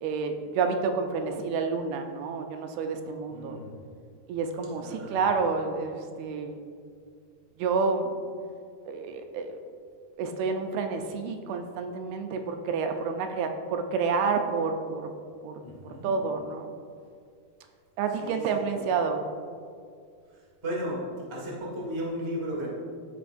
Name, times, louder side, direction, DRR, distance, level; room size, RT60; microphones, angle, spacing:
voice 1, 0.0-3.6 4.3-6.6 7.6-8.1 8.9-9.6 10.2-15.0 15.4-15.6 16.0-16.7 18.0-19.2, right 5 dB, 80° right, 5 dB, 2.4 m, -29 dB
voice 2, 3.3-3.7 4.7-5.2 15.6-16.1 18.2-18.7 20.6-21.0 21.3-22.7, equal, 45° right, -5 dB, 0.3 m, -35 dB
15.0 x 5.6 x 2.6 m, 2.2 s
omnidirectional pair, 4.5 m